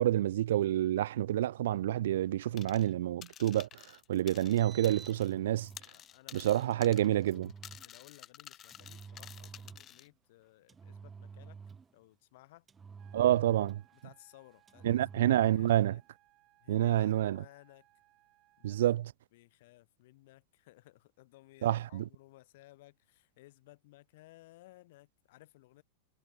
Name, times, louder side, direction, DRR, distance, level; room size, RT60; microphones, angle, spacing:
voice 1, 0.0-3.7 4.1-5.7 6.3-7.5 13.1-13.8 14.8-16.0 16.7-17.4 18.6-19.1 21.6-22.0, right 13 dB, 70° right, 0.4 m, -28 dB
sound 1, 2.6-2.9 3.2-5.3 5.6-10.1, left 10 dB, 30° left, 2.7 m, -51 dB
Engine, 4.6-5.9 6.7-7.9 8.7-10.0 10.7-12.0 12.7-14.0 14.7-15.9, right 5 dB, 20° right, 4.3 m, -50 dB
voice 2, 5.9-7.3 7.8-11.6 11.9-12.7 13.9-16.0 16.6-17.9 18.6-18.8 19.3-25.8, left 18 dB, 60° left, 2.5 m, -59 dB
sound 2, 13.0-19.0, right 17 dB, 40° right, 4.4 m, -68 dB
hypercardioid pair, 110°, 0 cm